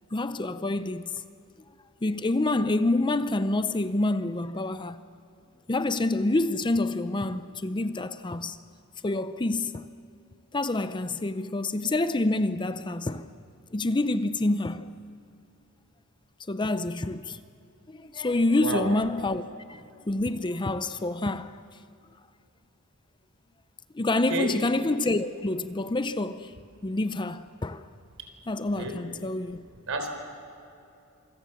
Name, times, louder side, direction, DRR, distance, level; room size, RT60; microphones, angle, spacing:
voice 1, 0.1-1.2 2.0-5.0 5.7-8.6 9.0-9.9 10.5-13.3 13.7-14.9 16.5-17.4 17.9-19.4 19.7-21.6 23.9-26.5 26.8-27.8 28.5-29.6, left 2 dB, 20° left, 0.6 m, -27 dB
voice 2, 18.6-18.9 24.3-24.5 28.8-29.0 29.9-30.1, right 2 dB, 65° right, 4.0 m, -29 dB
27.0 x 25.0 x 7.3 m
head